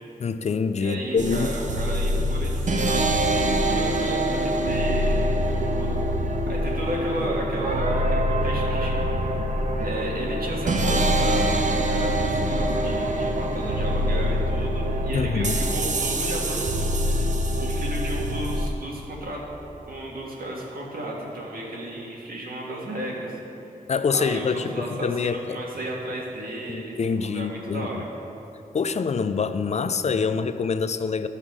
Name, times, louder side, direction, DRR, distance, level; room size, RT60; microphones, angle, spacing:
voice 1, 0.2-1.5 15.1-15.6 23.9-25.6 26.7-28.0 28.7-31.3, left 5 dB, 50° left, 11 dB, 0.4 m, -25 dB
voice 2, 0.8-3.0 3.6-6.0 6.5-9.2 9.8-11.6 11.8-16.9 17.6-19.4 19.9-23.4 24.1-28.1, right 1 dB, 85° right, -3 dB, 1.8 m, -33 dB
sound 1, 1.2-18.7, right 1 dB, 55° right, 0.7 m, -24 dB
13.0 x 5.7 x 4.7 m, 2.9 s
wide cardioid pair, 110°, 15 cm